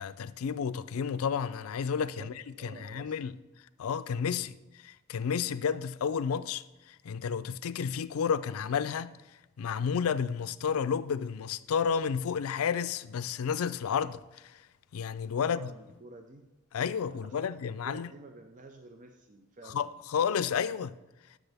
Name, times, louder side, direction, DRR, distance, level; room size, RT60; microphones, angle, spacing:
voice 1, 0.0-2.3 2.6-3.3 3.8-4.5 4.8-9.1 9.6-14.6 14.9-15.7 16.7-18.1 19.7-20.9, left 7 dB, 90° left, 0.4 m, -31 dB
voice 2, 2.2-3.2 15.4-16.5 17.1-19.8, right 2 dB, 40° right, 0.5 m, -50 dB
12.0 x 6.3 x 3.4 m
head